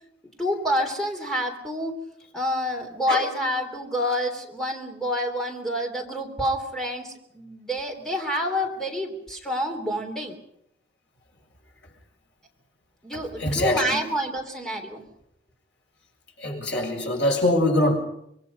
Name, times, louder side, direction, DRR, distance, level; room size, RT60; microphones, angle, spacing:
voice 1, 0.4-2.0 2.3-10.4 13.0-15.0, equal, 5° left, 3.4 m, -28 dB
voice 2, 13.1-14.1 16.4-18.0, left 1 dB, 80° left, 7.2 m, -24 dB
26.0 x 22.5 x 5.4 m
head